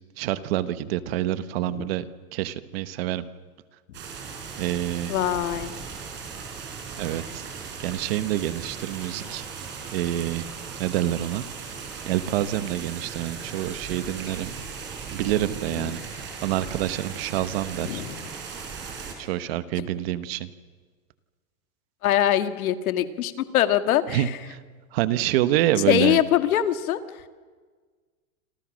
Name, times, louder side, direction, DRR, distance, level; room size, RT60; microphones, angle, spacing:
voice 1, 0.2-2.0 2.3-3.3 4.6-5.1 7.0-9.4 9.9-10.5 10.8-11.4 12.1-14.5 15.1-18.0 19.2-20.5 24.1-24.6 24.9-26.2, right 13 dB, 40° right, 13 dB, 1.2 m, -27 dB
sound 1, 3.9-19.1, right 6 dB, 25° right, 4.9 m, -38 dB
voice 2, 5.1-5.7 17.8-18.3 22.0-24.2 25.9-27.0, left 12 dB, 70° left, 10 dB, 2.0 m, -23 dB
28.0 x 27.0 x 6.4 m, 1.5 s
supercardioid pair, 170°, 44 cm